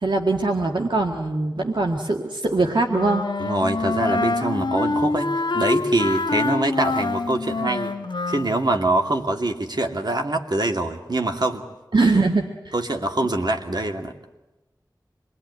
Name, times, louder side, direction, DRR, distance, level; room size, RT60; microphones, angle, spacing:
voice 1, 0.0-3.2 11.9-12.7, right 3 dB, 85° right, 3 dB, 1.8 m, -22 dB
Wind instrument woodwind instrument, 2.9-8.5, left 3 dB, 85° left, 1.4 m, -25 dB
voice 2, 3.4-7.9 8.3-11.6 12.7-14.1, right 2 dB, 65° right, 4 dB, 2.6 m, -24 dB
27.0 x 21.5 x 9.8 m, 1.0 s
wide cardioid pair, 50°, 8 cm